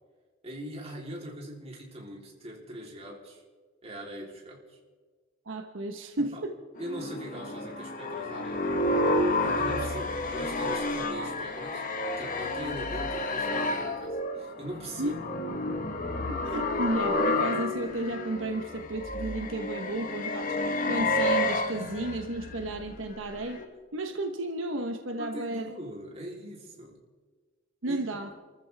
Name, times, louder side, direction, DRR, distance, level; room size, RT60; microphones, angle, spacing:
voice 1, 0.4-3.4 3.8-4.8 6.2-6.4 6.8-8.7 9.4-11.8 12.2-15.2 25.2-27.0 27.8-28.0, right 1 dB, 30° right, -2 dB, 3.6 m, -41 dB
voice 2, 5.5-6.6 15.0-15.1 16.3-23.6 23.9-25.6 27.8-28.3, right 2 dB, 80° right, 5 dB, 1.2 m, -33 dB
sound 1, 6.8-23.7, left 2 dB, 45° left, 1.4 m, -30 dB
29.0 x 14.0 x 3.5 m, 1.4 s
head